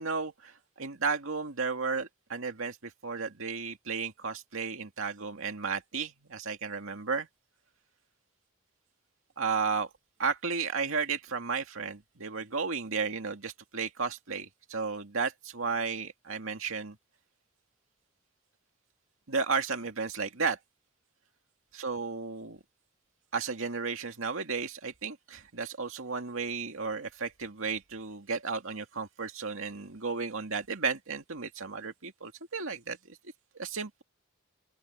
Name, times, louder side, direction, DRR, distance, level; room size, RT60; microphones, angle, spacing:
voice 1, 0.0-7.3 9.4-9.9 10.2-17.0 19.3-20.6 21.7-22.6 23.3-33.2 33.6-34.0, right 5 dB, 75° right, 2.2 m, -33 dB
open air
head